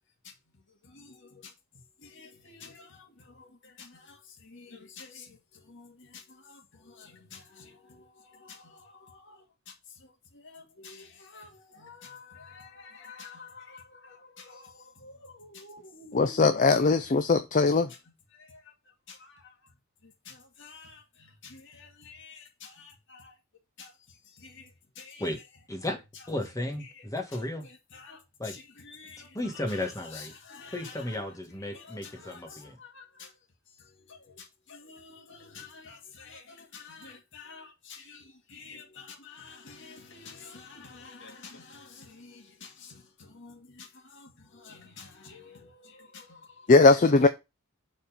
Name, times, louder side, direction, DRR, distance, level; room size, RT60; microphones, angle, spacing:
voice 1, 0.2-16.4 16.7-16.8 17.9-18.0 18.3-18.7 19.1-19.7 20.0-23.4 23.8-25.4 26.1-26.3 26.8-27.1 27.3-33.4 33.7-47.3, left 4 dB, 55° left, 2.1 m, -50 dB
voice 2, 16.1-17.9 46.7-47.3, left 3 dB, 35° left, 0.5 m, -20 dB
voice 3, 26.3-27.6 28.4-28.6 29.3-30.3 30.7-32.8, left 1 dB, 15° left, 1.8 m, -34 dB
7.0 x 4.3 x 5.0 m
head